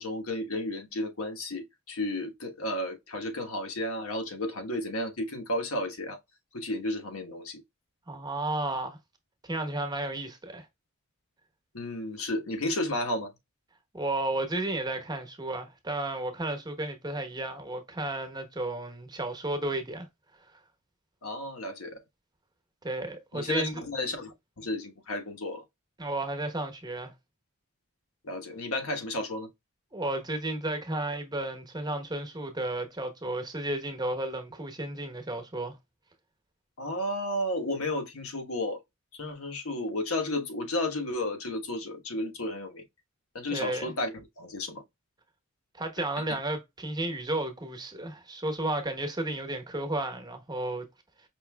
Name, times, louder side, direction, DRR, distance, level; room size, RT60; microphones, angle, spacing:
voice 1, 0.0-6.2 6.5-7.6 11.7-13.3 21.2-21.9 23.3-25.6 28.2-29.5 36.8-38.8 39.1-42.8 43.3-44.8, left 1 dB, 80° left, 1.2 m, -33 dB
voice 2, 8.1-9.0 9.4-10.7 13.9-20.1 22.8-23.7 26.0-27.1 29.9-35.7 43.5-43.9 45.8-50.9, right 2 dB, 20° right, 1.0 m, -33 dB
5.2 x 3.0 x 2.2 m
head